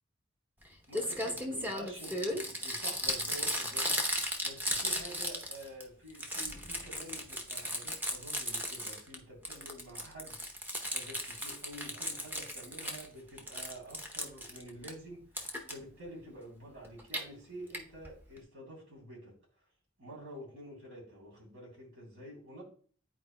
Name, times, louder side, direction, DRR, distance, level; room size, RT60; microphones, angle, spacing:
Crumpling crinkling, 0.6-0.7 0.9-5.8 6.1-9.1 9.4-13.1 13.4-14.9 15.4-15.7 16.8-17.2 17.7-17.8 18.0-18.1 18.4-18.5, equal, 10° right, 0.8 m, -36 dB
voice 1, 0.9-4.0 4.4-10.4 10.9-15.2 15.7-19.3 20.0-22.6, right 1 dB, 70° right, -3 dB, 3.4 m, -48 dB
10.5 x 4.4 x 2.2 m, 0.43 s
head